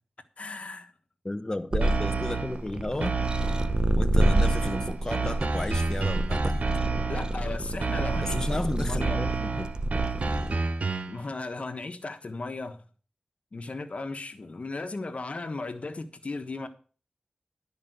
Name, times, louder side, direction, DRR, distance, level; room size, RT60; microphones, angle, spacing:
voice 1, 0.4-0.9 7.1-9.3 11.1-12.8 13.5-16.7, left 3 dB, 60° left, 1.3 m, -36 dB
voice 2, 1.2-3.2 3.9-6.6 8.2-9.7, left 2 dB, 25° left, 0.9 m, -33 dB
sound 1, 1.7-10.6, right 1 dB, 35° right, 0.9 m, -28 dB
sound 2, 1.8-2.6 3.0-3.8 4.2-7.4 7.8-8.6 9.0-11.2, right 4 dB, 70° right, 0.9 m, -30 dB
12.0 x 5.2 x 8.0 m
wide cardioid pair, 65°, 2 cm